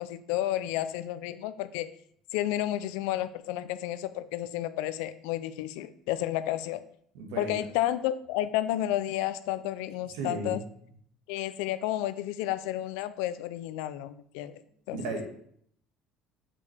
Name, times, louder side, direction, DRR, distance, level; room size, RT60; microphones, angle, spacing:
voice 1, 0.0-1.9 2.3-6.8 7.4-10.6 11.3-14.6 14.9-15.0, left 13 dB, 85° left, 13 dB, 0.4 m, -31 dB
voice 2, 7.1-7.7 10.1-10.6 14.9-15.4, right 2 dB, 90° right, 3 dB, 1.5 m, -35 dB
7.0 x 5.2 x 3.3 m, 0.64 s
cardioid pair, 125°, 0 cm